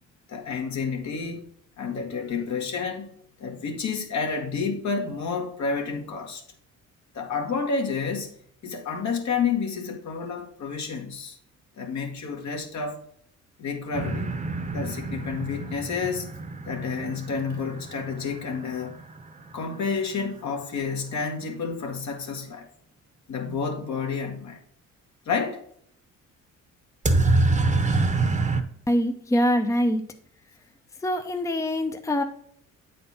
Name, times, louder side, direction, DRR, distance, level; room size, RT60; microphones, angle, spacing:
voice 1, 0.3-1.4 1.8-3.1 3.4-6.4 7.1-8.3 8.6-11.4 11.8-13.0 13.6-14.3 14.7-16.3 16.6-19.0 19.5-22.7 23.3-24.6 25.2-25.6, left 5 dB, 65° left, 1.7 m, -30 dB
sound 1, 13.9-19.7 27.0-28.6, right 3 dB, 25° right, 0.9 m, -26 dB
voice 2, 28.9-30.0 31.0-32.2, equal, 10° left, 0.7 m, -24 dB
8.3 x 4.2 x 4.2 m
cardioid pair, 90°, 30 cm